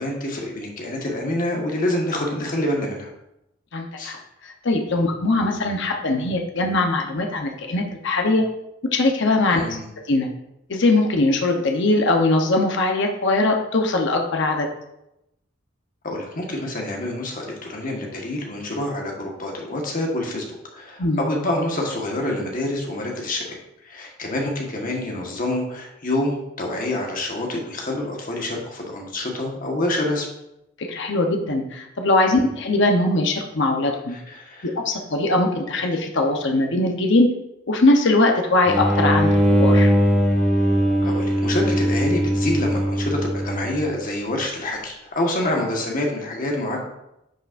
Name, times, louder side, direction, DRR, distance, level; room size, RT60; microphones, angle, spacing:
voice 1, 0.0-3.1 4.0-4.1 9.5-9.9 16.0-20.4 20.7-23.6 23.8-30.3 32.3-32.5 34.1-34.7 41.0-46.8, left 1 dB, 45° left, 0 dB, 1.5 m, -27 dB
voice 2, 3.7-8.4 8.9-9.6 10.1-10.3 10.7-14.7 21.0-21.2 30.9-34.2 34.6-37.3 37.7-39.9, left 2 dB, 65° left, 2 dB, 0.9 m, -21 dB
sound 1, 38.7-44.0, equal, 5° left, 2.3 m, -20 dB
10.5 x 5.7 x 2.6 m, 0.86 s
head